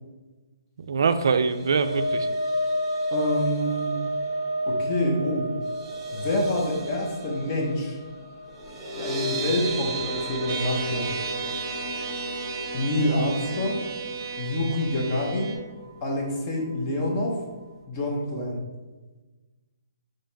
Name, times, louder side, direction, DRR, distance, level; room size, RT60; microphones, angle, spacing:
voice 1, 0.9-2.3, right 5 dB, 70° right, 10 dB, 0.3 m, -23 dB
sound 1, 1.3-15.5 15.8-16.1 16.4-16.5, equal, 10° right, 0.9 m, -31 dB
voice 2, 3.1-3.9 4.7-5.5 6.1-8.0 9.0-11.1 12.7-13.8 14.4-15.5 16.0-17.4 17.9-18.6, left 1 dB, 35° left, -1 dB, 0.9 m, -27 dB
sound 2, 10.5-15.6, right 4 dB, 40° right, 0.7 m, -34 dB
4.1 x 3.2 x 3.9 m, 1.2 s
hypercardioid pair, 145°, 2 cm